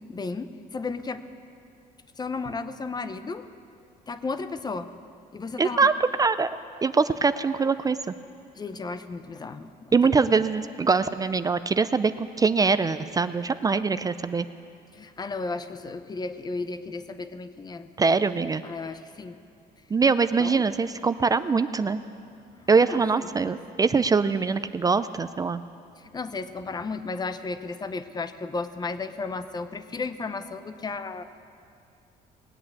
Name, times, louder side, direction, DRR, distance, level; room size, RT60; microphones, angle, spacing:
voice 1, 0.1-1.2 2.2-3.4 4.1-4.9 5.3-5.9 8.5-9.9 10.4-10.5 14.9-17.9 18.6-19.4 20.4-20.7 22.9-23.6 26.0-31.2, left 4 dB, 25° left, 11 dB, 0.7 m, -34 dB
voice 2, 5.6-5.9 6.2-6.5 6.8-8.1 9.9-14.4 18.0-18.6 19.9-22.0 22.7-25.6, right 4 dB, 20° right, 13 dB, 0.4 m, -23 dB
19.0 x 8.4 x 8.6 m, 2.6 s
cardioid pair, 110°, 17 cm